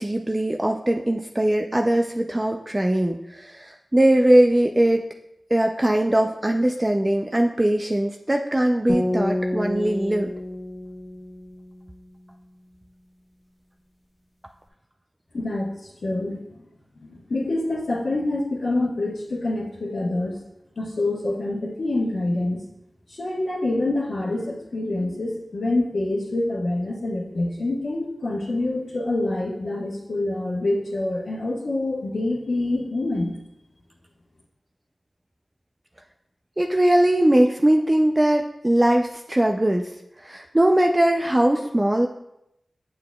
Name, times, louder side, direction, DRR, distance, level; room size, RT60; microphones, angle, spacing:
voice 1, 0.0-5.1 5.5-10.3 36.6-39.9 40.2-42.1, right 1 dB, 25° right, 3 dB, 0.4 m, -20 dB
sound 1, 8.9-12.1, left 1 dB, 35° left, 1.4 m, -29 dB
voice 2, 15.3-16.4 17.0-20.4 20.8-22.6 23.1-33.4, left 2 dB, 80° left, -9 dB, 1.2 m, -26 dB
7.7 x 6.5 x 2.3 m, 0.84 s
cardioid pair, 45°, 0 cm